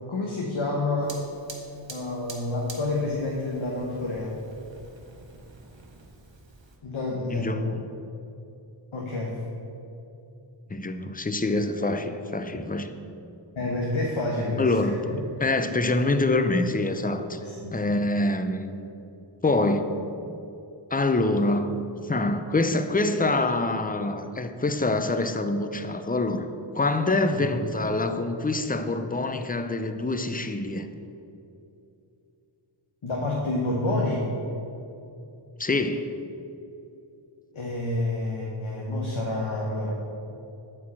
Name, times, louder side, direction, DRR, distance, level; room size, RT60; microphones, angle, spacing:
voice 1, 0.1-1.2 1.9-4.3 6.8-7.5 8.9-9.4 13.6-14.9 17.4-17.8 27.3-27.4 33.0-34.3 37.5-39.9, left 2 dB, 75° left, -2 dB, 1.1 m, -28 dB
Fire, 1.0-6.8, right 3 dB, 65° right, 1.1 m, -47 dB
voice 2, 7.3-7.9 10.7-12.9 14.6-17.4 17.7-18.9 19.4-19.9 20.9-21.7 22.0-30.9 35.6-36.1, left 2 dB, 20° left, 9 dB, 0.5 m, -25 dB
8.4 x 4.6 x 7.4 m, 2.8 s
wide cardioid pair, 55°, 49 cm